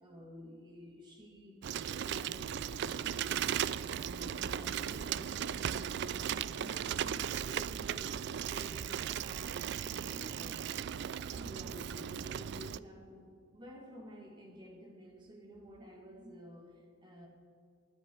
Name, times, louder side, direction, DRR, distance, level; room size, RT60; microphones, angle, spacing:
voice 1, 0.0-8.9 9.1-10.7 11.3-17.3, equal, 20° right, 0 dB, 2.1 m, -52 dB
Bicycle, 1.6-12.8, right 9 dB, 55° right, 0.3 m, -37 dB
19.5 x 10.0 x 4.5 m, 2.2 s
head